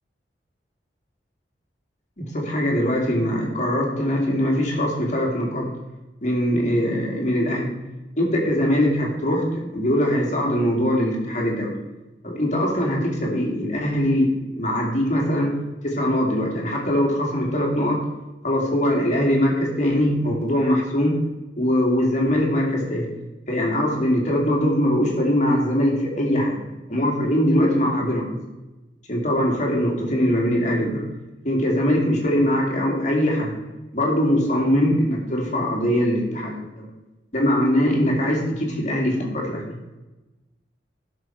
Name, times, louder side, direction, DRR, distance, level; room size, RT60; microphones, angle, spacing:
voice 1, 2.3-5.7 6.2-7.7 8.2-9.5 9.7-11.7 12.2-14.3 14.6-15.5 15.8-18.0 18.4-21.1 21.6-23.1 23.5-26.6 26.9-28.3 29.1-31.1 31.4-33.5 33.9-36.9 37.3-39.8, equal, 45° left, -1 dB, 2.6 m, -22 dB
12.5 x 6.5 x 4.7 m, 1.1 s
head